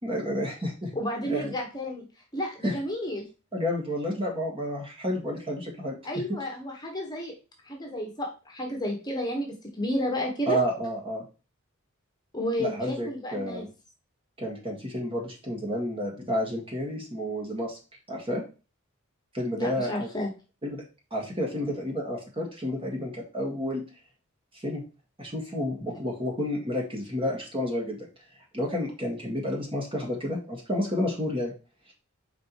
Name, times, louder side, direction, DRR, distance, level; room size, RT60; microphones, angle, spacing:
voice 1, 0.0-1.5 2.6-2.7 3.5-5.9 10.5-11.2 12.6-13.7 14.4-17.8 18.1-18.4 19.3-20.1 20.6-20.8 21.1-23.8 24.6-24.8 25.2-28.1 28.5-31.5, equal, 25° right, -1 dB, 1.8 m, -30 dB
voice 2, 0.9-2.0 2.3-3.2 6.0-7.3 7.6-10.6 12.3-13.7 19.5-20.3, left 1 dB, 20° left, 1 dB, 1.3 m, -31 dB
5.1 x 4.1 x 4.6 m, 0.33 s
head